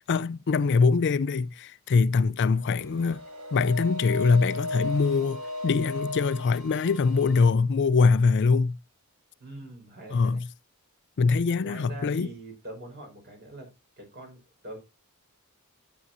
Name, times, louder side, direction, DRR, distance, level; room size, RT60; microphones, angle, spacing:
voice 1, 0.1-3.2 3.5-8.8 10.1-10.5 11.2-12.3, left 4 dB, 55° left, 0.4 m, -23 dB
sound 1, 2.7-7.5, left 2 dB, 70° right, 2.5 m, -36 dB
voice 2, 9.4-10.4 11.6-13.7 14.0-14.8, right 1 dB, 45° right, 4.9 m, -43 dB
12.5 x 8.3 x 2.6 m
head